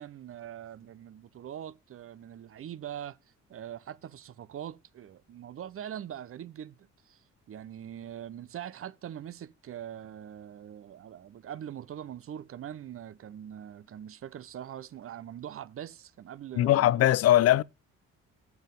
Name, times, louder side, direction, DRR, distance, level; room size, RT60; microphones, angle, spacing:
voice 1, 0.0-3.2 3.5-7.2 7.5-17.1, right 10 dB, 50° right, 0.6 m, -42 dB
voice 2, 16.6-17.6, left 13 dB, 55° left, 0.4 m, -21 dB
7.4 x 5.9 x 5.2 m
cardioid pair, 90°, 30 cm